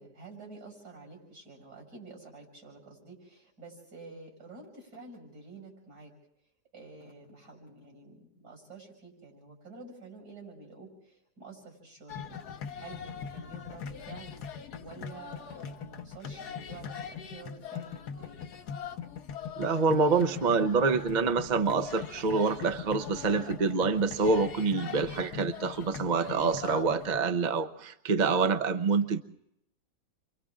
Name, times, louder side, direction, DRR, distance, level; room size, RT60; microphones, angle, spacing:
voice 1, 0.0-6.1 6.7-12.4 12.8-14.3 14.8-18.4, right 3 dB, 75° right, 0 dB, 7.6 m, -49 dB
sound 1, 12.1-27.2, left 7 dB, 75° left, 1.6 m, -41 dB
voice 2, 19.6-29.2, right 4 dB, 40° right, 9 dB, 0.7 m, -26 dB
29.5 x 24.5 x 3.7 m, 0.78 s
omnidirectional pair, 1.8 m